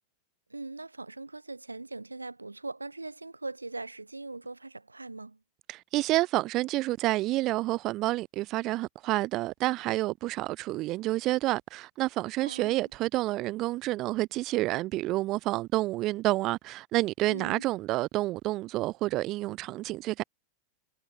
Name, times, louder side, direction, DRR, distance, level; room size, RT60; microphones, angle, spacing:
voice 1, 0.5-5.4 12.5-12.8 17.3-17.6, right 2 dB, 80° right, 1.6 m, -40 dB
voice 2, 5.7-20.2, right 18 dB, 35° right, 0.6 m, -29 dB
figure-of-eight pair, 90°, 0 cm